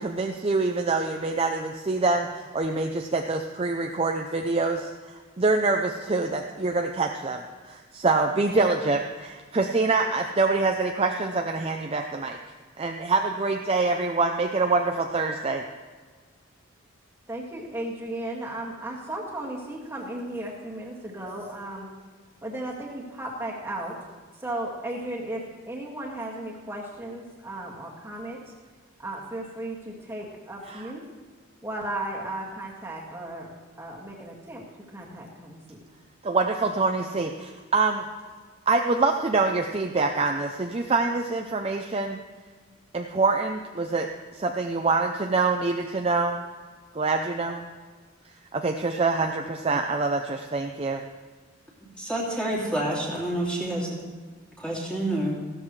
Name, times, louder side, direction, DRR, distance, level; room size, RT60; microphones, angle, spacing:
voice 1, 0.0-12.4 12.8-15.6 30.7-30.8 36.2-38.1 38.7-42.2 42.9-46.4 46.9-47.6 48.5-51.0, right 3 dB, 25° right, 3 dB, 0.5 m, -25 dB
voice 2, 17.3-21.9 22.4-24.0 24.4-28.4 29.0-31.0 31.6-34.6 34.9-35.8, right 1 dB, 10° right, -3 dB, 2.0 m, -35 dB
voice 3, 52.0-53.9 54.6-55.4, right 1 dB, 5° left, -5 dB, 2.7 m, -28 dB
15.0 x 13.0 x 3.2 m, 1.4 s
head